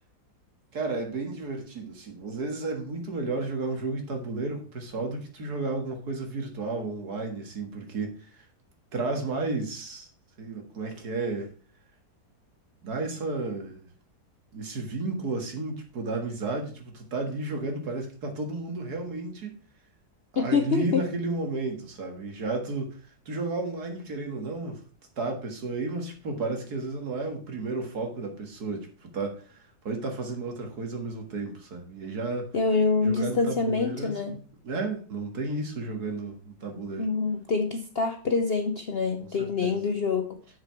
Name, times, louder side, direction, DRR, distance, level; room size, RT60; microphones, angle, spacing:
voice 1, 0.7-8.5 8.9-10.1 10.4-11.5 12.8-13.9 14.5-19.6 20.3-23.0 23.3-24.8 25.2-32.5 33.0-34.4 34.6-37.1 39.2-39.8, right 3 dB, 65° right, 2.2 m, -32 dB
voice 2, 20.4-21.1 32.5-34.4 37.0-40.4, left 4 dB, 50° left, 0.7 m, -26 dB
7.6 x 6.7 x 4.6 m
omnidirectional pair, 1.8 m